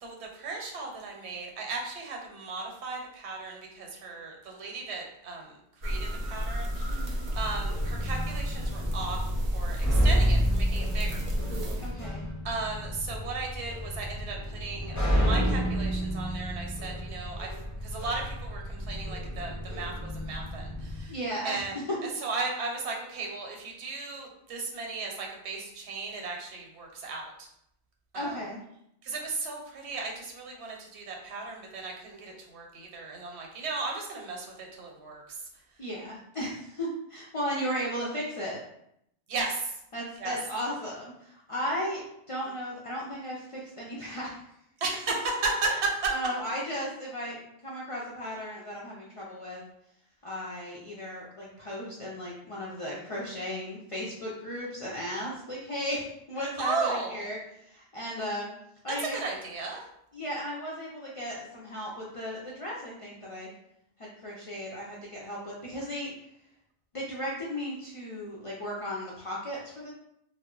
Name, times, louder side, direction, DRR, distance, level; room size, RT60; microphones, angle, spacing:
voice 1, 0.0-9.2 9.5-11.3 12.0-12.1 12.4-17.6 17.8-21.2 21.4-21.7 22.0-27.5 28.1-28.4 29.0-35.4 39.3-39.7 40.2-40.4 44.8-46.1 56.6-57.3 59.0-59.8, right 3 dB, 85° right, 1 dB, 0.9 m, -35 dB
sound 1, 5.8-11.9, equal, 50° right, 0.5 m, -31 dB
voice 2, 6.9-7.3 11.8-12.2 21.1-21.7 28.1-28.6 35.8-38.6 39.9-42.0 42.3-44.4 45.7-45.8 46.1-49.6 50.2-58.5 58.8-59.2 60.1-63.5 64.0-66.1 66.9-69.9, equal, 60° left, -5 dB, 0.3 m, -35 dB
sound 2, 7.3-21.0, equal, 20° left, 0.6 m, -31 dB
2.1 x 2.0 x 3.6 m, 0.76 s
omnidirectional pair, 1.1 m